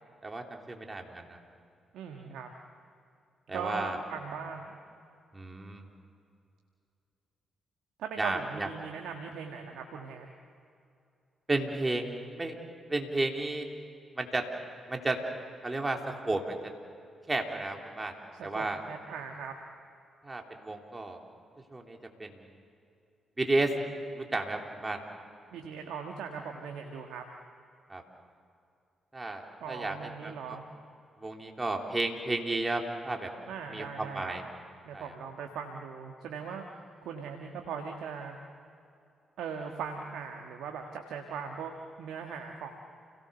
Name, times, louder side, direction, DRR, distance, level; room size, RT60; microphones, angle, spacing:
voice 1, 0.2-1.4 3.5-4.0 5.3-5.8 8.2-8.7 11.5-12.1 12.4-12.6 12.9-13.7 14.2-14.4 14.9-15.2 15.6-16.6 17.3-18.1 18.4-18.8 20.2-21.2 21.7-22.4 23.4-23.7 24.2-25.0 27.9-28.0 29.1-29.4 29.7-30.6 31.2-33.3 33.7-34.4 34.9-35.1, right 2 dB, 25° right, 2 dB, 3.3 m, -32 dB
voice 2, 1.9-2.5 3.5-4.7 8.0-10.3 18.3-19.5 25.5-27.2 29.6-30.6 33.5-34.4 34.8-38.4 39.4-41.7 42.0-42.7, right 6 dB, 75° right, 3 dB, 1.5 m, -39 dB
29.5 x 17.5 x 7.0 m, 2.5 s
hypercardioid pair, 45°, 0 cm